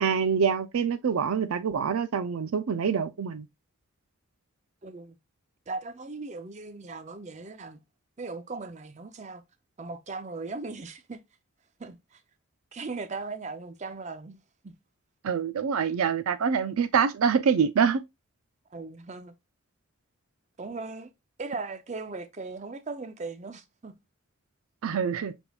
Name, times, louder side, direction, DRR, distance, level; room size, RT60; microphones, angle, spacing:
voice 1, 0.0-3.5 15.2-18.0 24.8-25.3, right 6 dB, 85° right, 0.4 m, -25 dB
voice 2, 4.8-5.2 5.7-7.8 8.2-9.4 9.8-11.2 11.8-12.2 12.7-14.4 14.6-14.7 18.7-19.3 20.6-21.1 21.4-23.9, right 3 dB, 35° right, 0.5 m, -38 dB
6.0 x 3.5 x 2.3 m
head